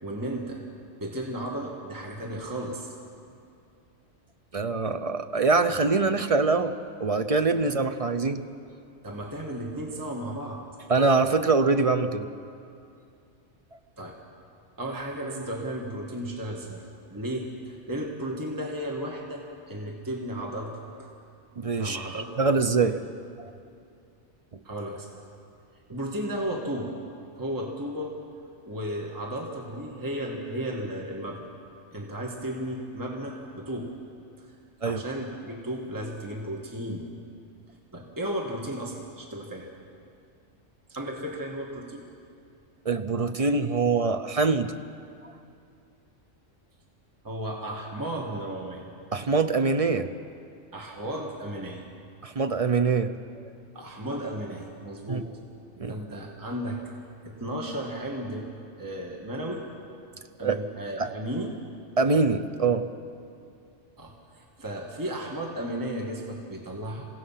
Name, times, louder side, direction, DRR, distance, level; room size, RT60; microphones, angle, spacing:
voice 1, 0.0-0.6 1.0-2.9 7.6-7.7 9.0-10.7 14.0-14.2 14.8-16.8 17.1-21.1 21.8-22.3 22.8-22.9 24.6-25.1 25.9-26.9 27.4-28.2 28.6-31.5 31.9-33.9 34.4-34.5 34.8-37.1 37.9-39.7 40.9-42.0 47.2-48.8 50.7-51.9 53.7-55.3 55.9-56.9 57.2-58.5 58.8-59.7 60.4-61.5 64.0-67.1, right 1 dB, 15° right, 0 dB, 1.6 m, -34 dB
voice 2, 4.5-6.7 7.0-8.4 10.9-12.3 21.6-23.0 34.8-35.0 42.9-44.7 49.1-50.1 52.2-53.1 55.1-55.2 55.8-55.9 60.4-60.6 61.0-61.1 62.0-62.9, right 4 dB, 35° right, 8 dB, 0.6 m, -24 dB
27.5 x 16.5 x 5.7 m, 2.5 s
omnidirectional pair, 1.3 m